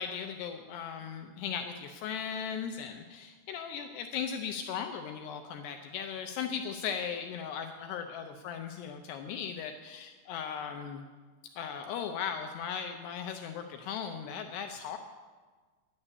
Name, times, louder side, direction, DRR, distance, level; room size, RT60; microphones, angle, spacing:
voice 1, 0.0-11.1 11.6-15.0, left 7 dB, 80° left, 5 dB, 2.4 m, -37 dB
11.0 x 9.9 x 8.2 m, 1.4 s
omnidirectional pair, 5.5 m